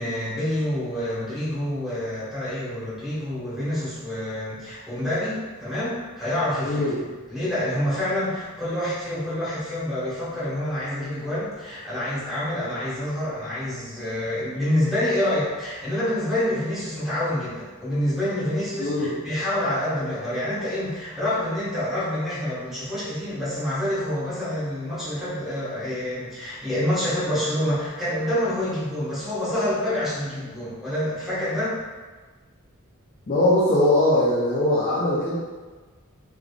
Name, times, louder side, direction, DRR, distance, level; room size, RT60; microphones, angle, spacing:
voice 1, 0.0-7.0 7.3-31.7, left 1 dB, ahead, -12 dB, 1.5 m, -27 dB
voice 2, 6.6-7.0 18.8-19.1 33.3-35.3, left 1 dB, 35° left, -10 dB, 0.7 m, -21 dB
3.5 x 3.4 x 2.4 m, 1.4 s
head